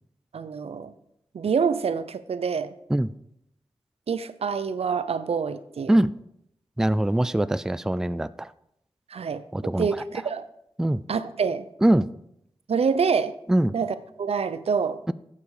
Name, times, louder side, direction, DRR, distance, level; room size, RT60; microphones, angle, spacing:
voice 1, 0.3-0.9 1.3-2.7 4.1-6.0 9.1-9.4 9.8-10.5 11.1-11.7 12.7-13.3 13.7-15.0, right 6 dB, 85° right, 0.7 m, -26 dB
voice 2, 6.8-8.5 9.5-9.9 10.8-11.0 11.8-12.1 13.5-13.7 15.1-15.2, right 1 dB, 5° right, 0.3 m, -22 dB
13.5 x 8.7 x 4.9 m
wide cardioid pair, 120°, 10 cm